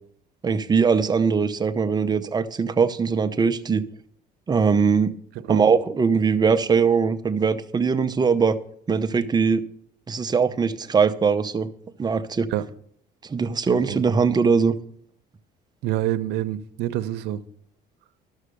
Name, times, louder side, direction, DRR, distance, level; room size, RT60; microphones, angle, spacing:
voice 1, 0.4-3.9 4.5-5.1 5.5-8.6 8.9-9.6 10.1-11.7 12.0-12.5 13.2-14.7, right 5 dB, 25° right, 0.7 m, -21 dB
voice 2, 15.8-17.4, right 13 dB, 85° right, 0.7 m, -27 dB
12.5 x 6.5 x 6.5 m
cardioid pair, 110°, 17 cm